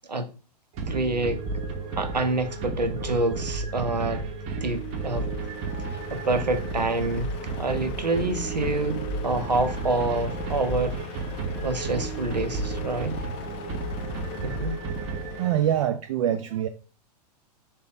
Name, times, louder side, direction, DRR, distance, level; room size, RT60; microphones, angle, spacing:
sound 1, 0.7-15.8, right 3 dB, 30° right, 0.7 m, -32 dB
voice 1, 0.9-1.4 2.0-4.2 4.6-5.3 6.1-11.0 11.6-13.2 14.4-14.8, right 2 dB, 90° right, 0.7 m, -27 dB
Truck, 4.7-15.9, left 7 dB, 25° left, 0.4 m, -42 dB
voice 2, 15.4-16.7, right 10 dB, 50° right, 0.4 m, -24 dB
3.6 x 2.8 x 3.7 m
figure-of-eight pair, 105°, 21 cm